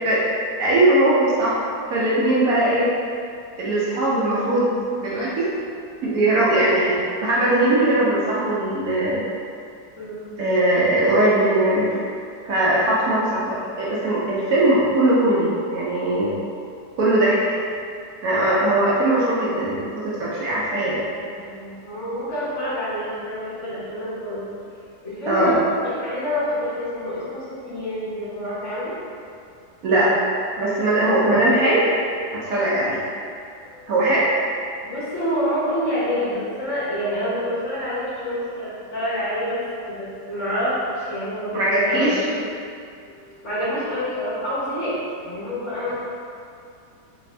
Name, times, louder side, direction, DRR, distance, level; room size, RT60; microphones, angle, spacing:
voice 1, 0.6-1.6 1.9-2.9 3.6-4.7 5.0-5.5 6.0-9.2 10.4-12.0 12.4-16.3 17.0-17.6 18.2-21.0 25.3-25.5 29.8-30.3 30.6-31.9 32.3-33.0 33.9-34.3 41.5-42.2, right 1 dB, 70° right, -7 dB, 1.0 m, -20 dB
voice 2, 10.0-10.3 21.0-24.4 25.0-28.9 32.6-32.8 33.5-33.9 34.8-42.1 43.1-45.9, equal, 50° left, -11 dB, 1.2 m, -27 dB
3.3 x 2.6 x 3.2 m, 2.5 s
omnidirectional pair, 1.8 m